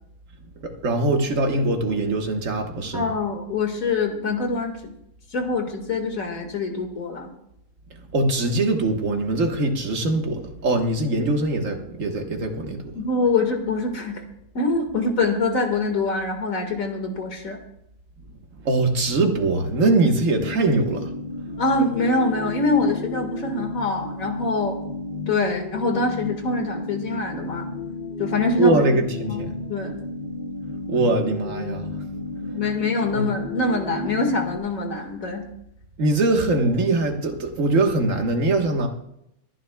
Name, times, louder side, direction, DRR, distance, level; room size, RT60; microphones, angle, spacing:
voice 1, 0.6-3.1 7.9-13.0 18.6-21.1 28.6-29.6 30.6-32.1 32.5-32.6 33.1-33.3 36.0-38.9, right 2 dB, 60° right, 3 dB, 1.8 m, -22 dB
voice 2, 2.9-4.8 5.3-7.3 13.0-14.2 14.5-17.6 21.6-24.8 25.3-27.7 28.2-28.8 29.3-29.4 29.7-30.0 32.4-35.5, left 3 dB, 65° left, 3 dB, 2.3 m, -24 dB
sound 1, 19.7-34.6, left 3 dB, 45° left, 0.8 m, -33 dB
24.5 x 10.5 x 2.3 m, 0.79 s
omnidirectional pair, 1.6 m